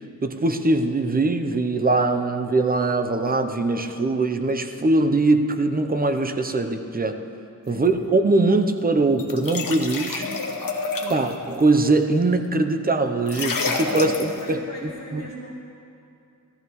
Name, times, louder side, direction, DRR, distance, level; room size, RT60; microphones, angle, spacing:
voice 1, 0.2-7.2 7.7-10.3 11.1-15.2, right 2 dB, 25° right, 7 dB, 0.7 m, -22 dB
sound 1, 9.2-11.3 13.3-14.4, left 4 dB, 75° left, 1.2 m, -28 dB
voice 2, 10.2-10.6 11.0-11.3 13.9-15.5, left 2 dB, 50° left, -6 dB, 1.6 m, -40 dB
17.5 x 14.0 x 3.1 m, 2.6 s
wide cardioid pair, 125°, 33 cm